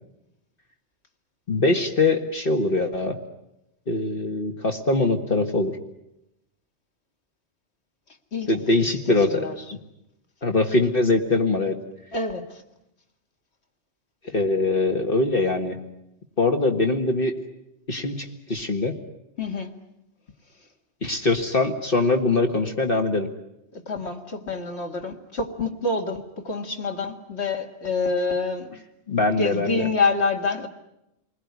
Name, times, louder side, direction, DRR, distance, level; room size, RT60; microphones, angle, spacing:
voice 1, 1.5-3.2 3.9-5.8 8.5-9.4 10.4-11.8 14.2-15.8 16.4-17.3 17.9-18.9 21.0-23.3 29.1-29.9, left 2 dB, 55° left, 1.9 m, -22 dB
voice 2, 8.3-8.8 9.1-9.5 12.1-12.6 19.4-19.7 23.7-30.7, left 3 dB, 75° left, 2.3 m, -27 dB
29.5 x 21.0 x 9.6 m
omnidirectional pair, 1.1 m